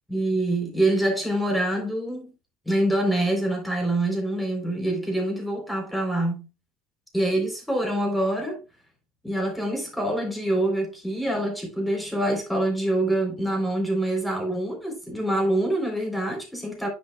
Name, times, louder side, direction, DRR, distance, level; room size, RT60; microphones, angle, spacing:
voice 1, 0.1-2.3 2.7-6.5 7.1-8.6 9.2-16.9, right 1 dB, ahead, 3.5 m, -25 dB
9.9 x 5.7 x 2.3 m
supercardioid pair, 105°, 0 cm